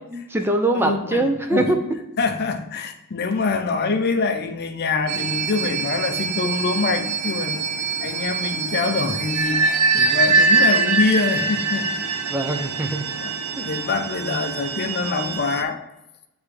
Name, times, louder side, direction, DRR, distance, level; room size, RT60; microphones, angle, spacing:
voice 1, 0.0-1.8 6.4-6.5 12.3-13.0 13.6-13.7, right 1 dB, 10° right, 5 dB, 0.4 m, -23 dB
voice 2, 0.7-1.7 2.2-7.7 8.0-11.9 13.1-13.3 13.6-15.8, left 4 dB, 45° left, 7 dB, 0.5 m, -25 dB
sound 1, 5.1-15.6, right 4 dB, 85° right, 0.7 m, -23 dB
9.4 x 3.5 x 3.2 m, 0.89 s
head